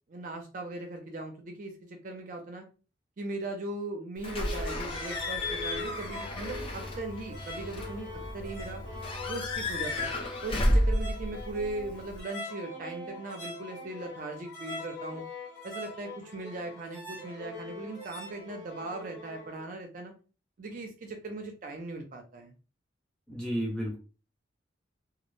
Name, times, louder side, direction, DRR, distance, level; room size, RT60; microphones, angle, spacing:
voice 1, 0.1-2.6 3.2-8.8 9.3-10.1 10.4-15.2 15.6-20.1 20.6-22.5, right 2 dB, 45° right, 3 dB, 0.4 m, -39 dB
sound 1, 4.2-19.6, left 1 dB, 55° left, 1.3 m, -43 dB
Slam / Squeak / Alarm, 4.2-12.2, left 1 dB, 30° left, 0.5 m, -32 dB
voice 2, 23.3-24.0, equal, 5° left, -4 dB, 0.9 m, -32 dB
2.2 x 2.0 x 3.0 m, 0.34 s
head